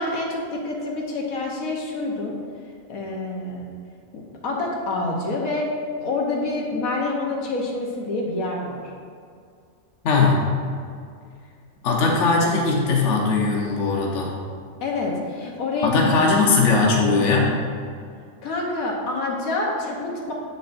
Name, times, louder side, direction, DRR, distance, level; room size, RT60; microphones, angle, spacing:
voice 1, 0.0-2.3 2.9-3.7 4.1-5.7 6.0-8.8 14.8-16.1 18.4-20.3, left 2 dB, 80° left, -2 dB, 1.4 m, -27 dB
voice 2, 10.0-10.4 11.8-14.3 15.8-17.5, left 3 dB, 60° left, -2 dB, 1.2 m, -19 dB
8.0 x 6.7 x 2.6 m, 2.2 s
omnidirectional pair, 1.4 m